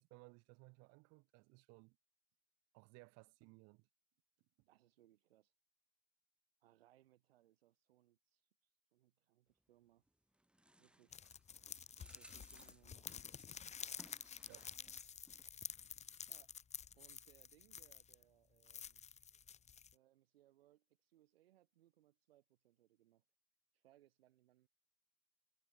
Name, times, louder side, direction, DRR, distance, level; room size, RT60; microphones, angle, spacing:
voice 1, 0.0-2.0 2.7-3.9 4.6-4.7 14.5-14.7, right 28 dB, 55° right, 7.1 m, -62 dB
voice 2, 4.7-5.5 6.6-10.0 10.8-11.2 11.9-13.2 16.3-16.6 16.9-19.0 19.9-23.2 23.7-24.7, right 14 dB, 75° right, 3.5 m, -71 dB
sound 1, 10.1-15.0 15.3-15.4, right 1 dB, 5° right, 5.3 m, -65 dB
sound 2, 11.1-18.2 18.6-19.9, left 7 dB, 20° left, 1.6 m, -51 dB
hypercardioid pair, 100°, 30 cm